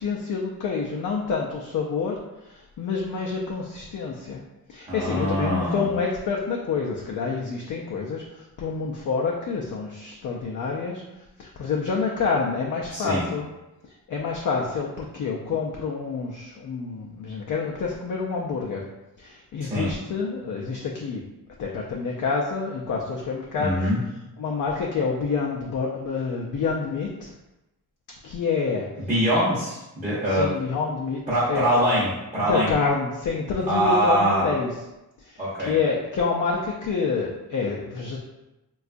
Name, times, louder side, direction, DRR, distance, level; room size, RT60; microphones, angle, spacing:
voice 1, 0.0-2.2 2.4-4.4 4.7-11.0 11.4-13.5 14.1-18.8 19.2-21.2 21.6-23.9 24.4-27.3 28.2-28.9 30.3-31.2 31.5-31.9 32.4-34.7 35.2-35.4 35.7-38.2, left 5 dB, 55° left, -1 dB, 0.4 m, -27 dB
voice 2, 4.9-5.8 12.9-13.3 19.6-19.9 23.6-24.0 29.1-30.5 31.3-32.7 33.7-34.5 35.4-35.8, equal, 20° right, -9 dB, 0.7 m, -23 dB
3.6 x 2.3 x 2.5 m, 0.96 s
wide cardioid pair, 130°, 38 cm